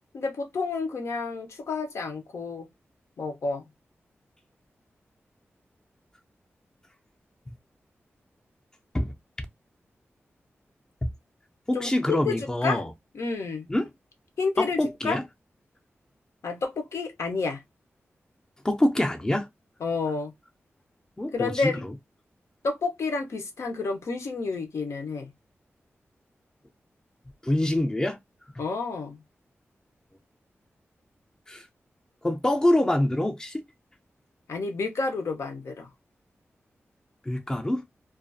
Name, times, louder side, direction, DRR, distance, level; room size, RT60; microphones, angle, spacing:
voice 1, 0.1-2.7 3.2-3.7 11.7-12.8 13.1-13.7 14.4-15.2 16.4-17.6 19.8-20.3 21.3-21.8 22.6-25.3 28.6-29.2 34.5-35.9, left 4 dB, 85° left, 0.7 m, -30 dB
voice 2, 11.7-12.9 13.7-13.9 14.6-15.2 18.6-19.5 21.2-21.7 27.4-28.2 31.5-31.6 32.2-33.6 37.3-37.8, left 1 dB, 15° left, 0.4 m, -25 dB
2.4 x 2.3 x 2.5 m
wide cardioid pair, 105°, 5 cm